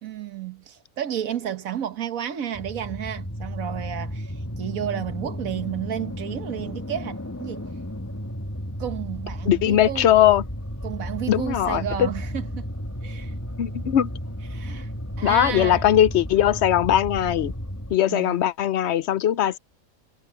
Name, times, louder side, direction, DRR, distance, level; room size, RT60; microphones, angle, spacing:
voice 1, 0.0-7.7 8.8-10.1 10.8-12.7 13.0-13.4 14.5-14.9 15.2-15.9 18.1-18.4, right 10 dB, 75° right, 1.6 m, -32 dB
sound 1, 2.5-18.0, equal, 10° left, 2.0 m, -33 dB
voice 2, 9.5-10.4 11.3-12.1 13.6-14.1 15.2-17.5 17.9-19.6, left 11 dB, 60° left, 0.8 m, -20 dB
omnidirectional pair, 1.5 m